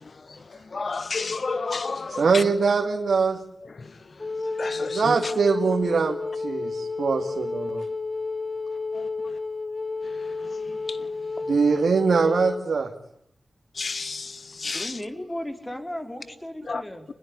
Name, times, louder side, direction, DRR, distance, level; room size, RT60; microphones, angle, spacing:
voice 1, 0.0-2.4 3.6-4.0 4.6-5.3 8.9-9.1 10.0-11.1 13.7-15.0 16.7-16.8, left 4 dB, 60° left, 1.5 m, -32 dB
voice 2, 2.2-3.4 4.8-7.9 11.5-12.9, right 5 dB, 80° right, 2.4 m, -22 dB
Wind instrument woodwind instrument, 4.2-12.6, left 3 dB, 40° left, 2.5 m, -31 dB
voice 3, 14.6-17.1, left 1 dB, 15° left, 5.0 m, -35 dB
28.0 x 21.5 x 10.0 m
cardioid pair, 60°, 0 cm